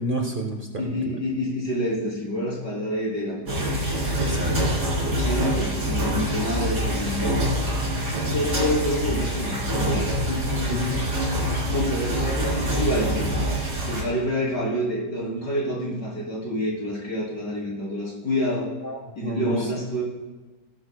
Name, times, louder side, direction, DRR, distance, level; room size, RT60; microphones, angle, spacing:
voice 1, 0.0-0.6 1.0-1.1 4.2-4.8 10.7-10.8 18.8-19.6, equal, 35° right, 2 dB, 1.1 m, -29 dB
voice 2, 0.8-3.8 5.2-7.6 8.3-11.1 11.6-13.3 13.8-18.7 19.2-20.0, left 1 dB, 80° left, -5 dB, 4.0 m, -28 dB
sound 1, 3.5-14.0, equal, 70° right, 4.1 m, -25 dB
17.0 x 11.5 x 2.3 m, 1.3 s
omnidirectional pair, 1.8 m